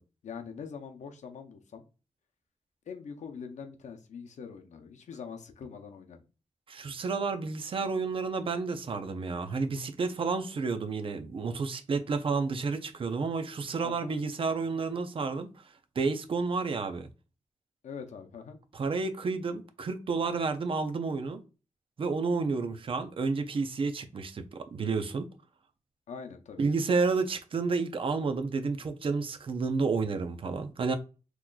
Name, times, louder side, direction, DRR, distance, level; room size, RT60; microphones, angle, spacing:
voice 1, 0.0-1.8 2.9-6.2 13.8-14.2 17.8-18.6 26.1-26.6, left 6 dB, 90° left, 0.6 m, -43 dB
voice 2, 6.7-15.5 16.0-17.1 18.7-21.4 22.0-25.3 26.6-30.9, right 4 dB, 50° right, 0.5 m, -30 dB
3.8 x 3.0 x 2.2 m
wide cardioid pair, 140°, 12 cm